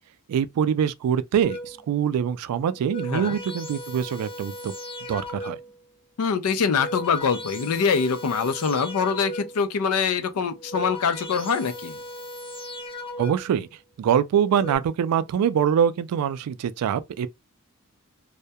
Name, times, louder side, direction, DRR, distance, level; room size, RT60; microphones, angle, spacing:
voice 1, 0.3-4.7 5.1-5.6 13.2-13.7 14.0-17.3, right 8 dB, 85° right, 0.3 m, -24 dB
sound 1, 1.4-1.9 2.6-5.8 6.5-9.7 10.4-13.6 14.3-14.8, equal, 25° left, 0.7 m, -37 dB
voice 2, 6.2-12.0, left 5 dB, 75° left, 0.4 m, -24 dB
2.2 x 2.1 x 2.7 m
head